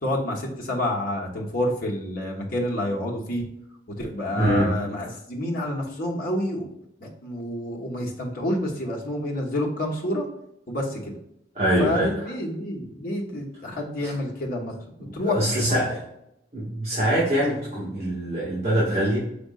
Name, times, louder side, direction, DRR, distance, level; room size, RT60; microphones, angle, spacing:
voice 1, 0.0-3.4 4.0-6.7 7.0-10.3 10.7-11.1 11.8-14.7 15.1-15.4, left 1 dB, 50° left, -2 dB, 1.3 m, -28 dB
voice 2, 4.4-4.7 11.6-12.3 14.0-14.1 15.0-16.0 16.5-19.2, right 1 dB, 35° right, -8 dB, 1.8 m, -24 dB
6.2 x 3.5 x 2.4 m, 0.80 s
head